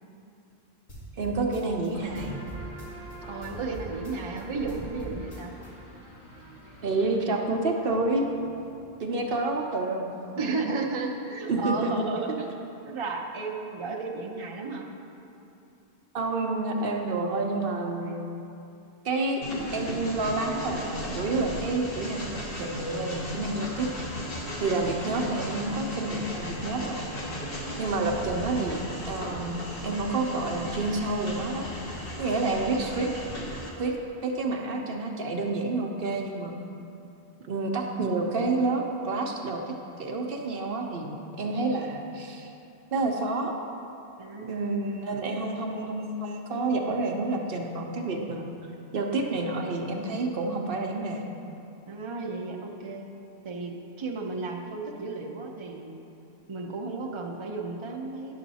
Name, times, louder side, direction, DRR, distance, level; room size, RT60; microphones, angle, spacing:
sound 1, 0.9-3.2 3.4-5.7, right 1 dB, 45° left, 1.8 m, -43 dB
voice 1, 1.2-2.4 6.8-8.3 9.0-10.6 11.5-11.9 16.1-18.3 19.0-19.4 19.7-23.9 24.6-27.2 27.8-31.7 32.2-33.1 33.8-36.5 37.5-39.7 40.0-42.5 42.9-43.5 44.5-48.5 48.9-51.3, right 3 dB, 65° right, 1 dB, 0.9 m, -29 dB
sound 2, 1.9-9.3, right 2 dB, 85° left, 2.6 m, -46 dB
voice 2, 3.3-5.5 10.4-12.5 12.8-14.8 44.2-45.0 51.9-53.1 53.4-55.9 56.5-58.4, right 3 dB, 30° right, 0 dB, 0.7 m, -34 dB
Train, 19.4-33.7, equal, 65° left, 1.5 m, -36 dB
10.5 x 6.5 x 4.1 m, 2.7 s
omnidirectional pair, 1.1 m